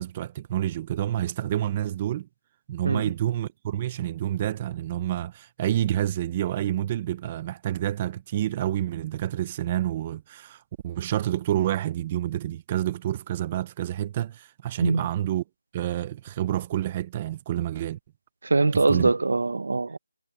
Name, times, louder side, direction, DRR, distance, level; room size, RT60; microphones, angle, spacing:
voice 1, 0.0-2.3 2.7-15.4 15.7-18.0 18.7-19.1, right 12 dB, 15° right, 0.6 m, -28 dB
voice 2, 18.4-20.0, right 3 dB, 55° right, 1.2 m, -22 dB
figure-of-eight pair, 175°, 0 cm